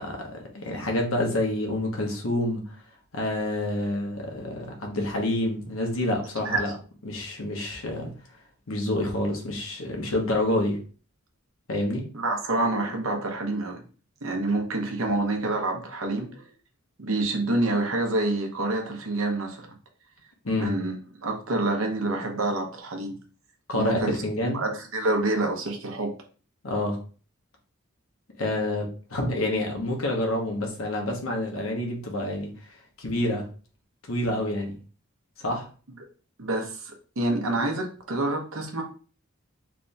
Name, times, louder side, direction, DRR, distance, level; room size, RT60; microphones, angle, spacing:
voice 1, 0.0-2.8 3.1-6.7 7.0-8.1 8.7-10.8 11.7-12.0 20.4-20.7 23.7-24.6 26.6-27.0 28.4-33.5 34.1-34.7 35.4-35.7, left 1 dB, 85° left, 1 dB, 1.1 m, -28 dB
voice 2, 12.1-13.8 14.2-16.5 17.0-19.7 20.6-23.1 23.7-24.2 24.5-26.1 36.4-38.8, right 2 dB, 90° right, 3 dB, 0.9 m, -27 dB
3.4 x 2.7 x 3.3 m, 0.39 s
head